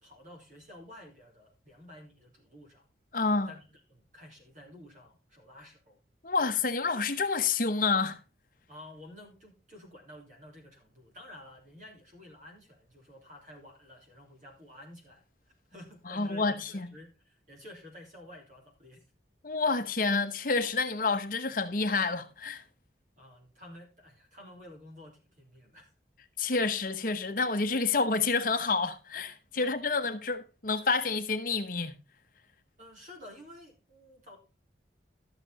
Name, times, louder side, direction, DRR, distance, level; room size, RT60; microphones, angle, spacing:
voice 1, 0.0-2.9 3.5-6.0 8.7-15.2 15.7-19.0 23.2-25.9 29.5-29.7 32.8-34.4, left 1 dB, 45° right, 3.2 m, -51 dB
voice 2, 3.1-3.5 6.2-8.2 16.1-16.9 19.4-22.6 26.4-32.0, left 4 dB, 50° left, 1.0 m, -29 dB
13.0 x 6.6 x 4.0 m
head